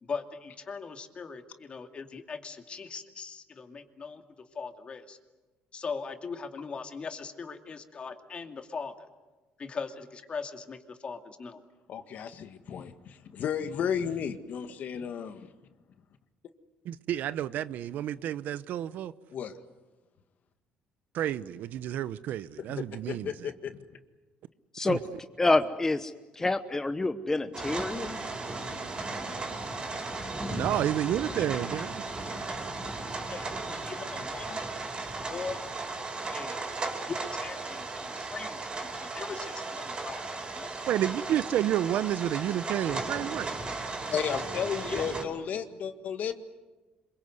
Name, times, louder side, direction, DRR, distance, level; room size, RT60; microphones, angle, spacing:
voice 1, 0.0-4.2 4.5-5.2 5.7-8.9 9.6-11.6 31.3-31.5 33.3-34.7 35.3-35.6 36.3-36.6 37.1-38.7 38.9-41.0 44.8-45.0, left 5 dB, 35° left, 2.5 m, -40 dB
voice 2, 11.9-15.5 19.3-19.6 22.7-23.8 32.4-32.5 44.1-46.5, left 7 dB, 60° left, 1.8 m, -33 dB
voice 3, 16.8-19.1 21.1-23.3 24.9-25.0 30.5-32.0 40.9-43.5, right 11 dB, 70° right, 0.8 m, -30 dB
voice 4, 25.4-26.1 26.4-28.2, left 2 dB, 15° left, 1.0 m, -27 dB
sound 1, 27.5-45.2, right 3 dB, 30° right, 5.3 m, -36 dB
26.5 x 23.5 x 8.1 m
cardioid pair, 95°, 3 cm